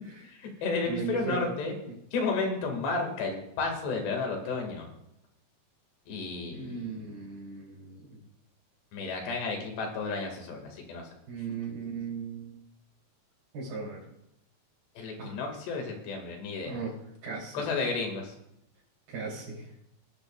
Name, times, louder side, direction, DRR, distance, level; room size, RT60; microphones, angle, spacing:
voice 1, 0.2-1.7 2.1-4.9 6.1-7.0 8.9-11.1 15.0-16.8 17.5-18.3, left 3 dB, 70° left, 2 dB, 4.2 m, -32 dB
voice 2, 0.8-1.5 1.9-2.0 6.5-8.2 11.3-12.6 13.5-14.0 15.2-15.4 16.6-16.9 17.2-17.6 19.1-19.7, right 4 dB, 55° right, -9 dB, 5.2 m, -37 dB
21.0 x 10.5 x 2.4 m, 0.83 s
omnidirectional pair, 5.1 m